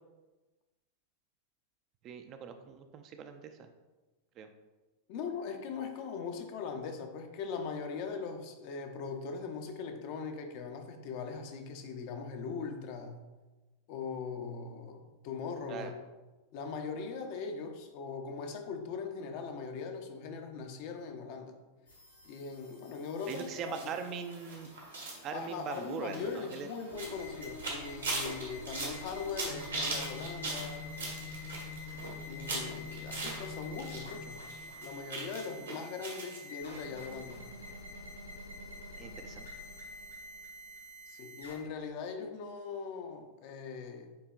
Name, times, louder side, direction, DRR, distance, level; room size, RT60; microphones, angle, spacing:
voice 1, 2.0-3.7 4.4-4.5 15.7-15.9 23.3-24.7 25.2-26.7 39.0-39.4, right 6 dB, 35° right, 7 dB, 0.4 m, -41 dB
voice 2, 5.1-13.2 13.9-16.0 16.5-21.6 22.2-23.9 25.3-30.9 32.2-34.5 34.8-37.5 41.1-44.2, left 5 dB, 45° left, 5 dB, 0.6 m, -40 dB
sound 1, 21.9-41.6, left 3 dB, 80° left, 0.9 m, -47 dB
sound 2, 23.2-34.0 34.3-36.4 36.7-36.8 37.1-37.2, right 3 dB, 70° right, 1.1 m, -40 dB
7.8 x 2.8 x 2.3 m, 1.2 s
figure-of-eight pair, 90°, 0 cm